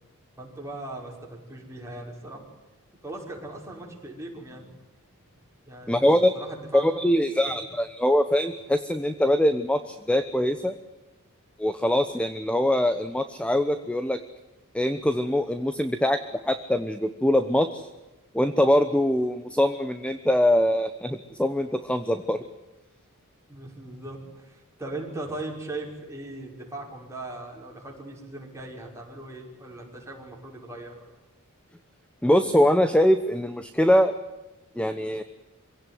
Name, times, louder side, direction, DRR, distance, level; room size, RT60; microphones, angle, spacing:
voice 1, 0.4-2.5 3.0-4.7 5.7-6.9 7.5-7.6 23.5-31.0, right 2 dB, 15° right, -1 dB, 5.8 m, -39 dB
voice 2, 5.9-6.3 6.7-10.7 11.6-14.2 14.7-16.2 16.4-17.9 18.3-22.4 32.2-34.1 34.8-35.2, left 1 dB, 5° left, 10 dB, 1.0 m, -23 dB
26.0 x 17.0 x 9.5 m, 1.1 s
head